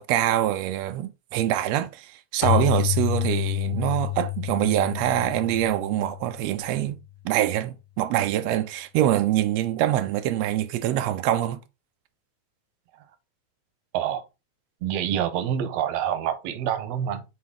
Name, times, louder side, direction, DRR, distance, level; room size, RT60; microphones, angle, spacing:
voice 1, 0.0-7.0 7.2-11.6, right 12 dB, 90° right, 1.5 m, -24 dB
Keyboard (musical), 2.4-6.9, left 16 dB, 85° left, 2.1 m, -28 dB
voice 2, 14.8-17.2, right 9 dB, 70° right, 1.7 m, -27 dB
6.3 x 4.2 x 3.6 m
omnidirectional pair, 3.5 m